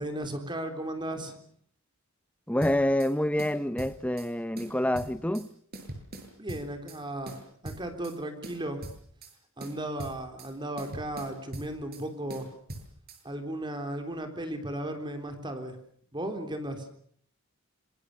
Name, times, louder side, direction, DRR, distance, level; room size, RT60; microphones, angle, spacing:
voice 1, 0.0-1.4 6.4-8.9 9.6-12.5 13.2-15.8 16.1-16.9, right 1 dB, 20° right, 3.6 m, -35 dB
voice 2, 2.5-5.5, left 1 dB, 5° left, 1.0 m, -27 dB
sound 1, 2.6-3.1 3.4-4.3 4.6-5.5 5.7-7.0 7.3-8.2 8.4-9.3 9.6-10.5 10.8-12.0 12.3-13.2, right 1 dB, 50° right, 7.1 m, -42 dB
26.5 x 25.5 x 6.7 m
head